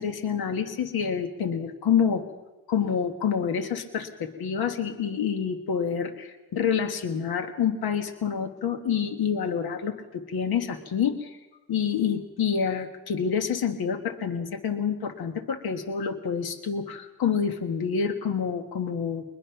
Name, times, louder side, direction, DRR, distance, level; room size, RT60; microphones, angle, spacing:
voice 1, 0.0-2.2 2.7-11.4 11.7-19.2, left 7 dB, 80° left, 7 dB, 1.6 m, -27 dB
22.0 x 21.0 x 5.9 m, 1.1 s
cardioid pair, 70°, 37 cm